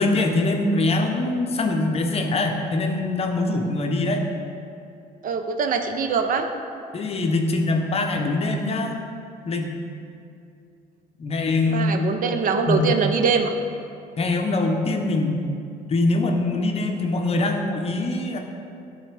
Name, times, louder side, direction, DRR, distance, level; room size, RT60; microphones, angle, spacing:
voice 1, 0.0-4.2 6.9-9.0 9.5-9.7 11.2-12.1 12.7-12.8 14.2-15.5 15.9-18.4, left 2 dB, 40° left, 3 dB, 0.7 m, -23 dB
voice 2, 5.2-6.5 11.7-13.5, right 5 dB, 55° right, 6 dB, 0.6 m, -23 dB
11.0 x 4.0 x 3.3 m, 2.5 s
cardioid pair, 105°, 17 cm